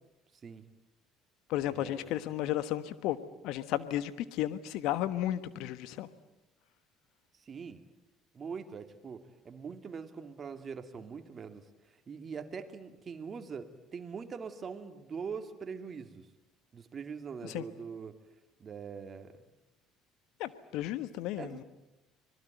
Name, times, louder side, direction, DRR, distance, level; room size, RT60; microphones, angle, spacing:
voice 1, 0.3-0.6 1.6-2.2 7.3-7.8 8.3-16.3 16.7-18.2 18.6-19.3 21.4-21.6, right 6 dB, 40° right, 2.6 m, -43 dB
voice 2, 1.5-3.2 3.4-6.1 17.5-17.6 20.4-21.6, left 13 dB, 65° left, 1.3 m, -33 dB
25.5 x 20.5 x 9.3 m
hypercardioid pair, 60°, 0 cm